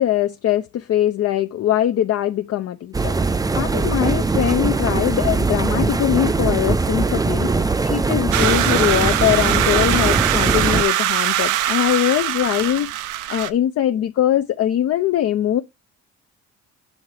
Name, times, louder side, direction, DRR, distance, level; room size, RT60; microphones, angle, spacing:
voice 1, 0.0-3.1 3.5-15.6, left 11 dB, 55° left, 0.5 m, -21 dB
sound 1, 2.9-10.8, right 3 dB, 10° right, 0.4 m, -21 dB
sound 2, 8.3-13.5, right 13 dB, 85° right, 0.6 m, -22 dB
6.4 x 3.2 x 4.8 m
cardioid pair, 90°, 30 cm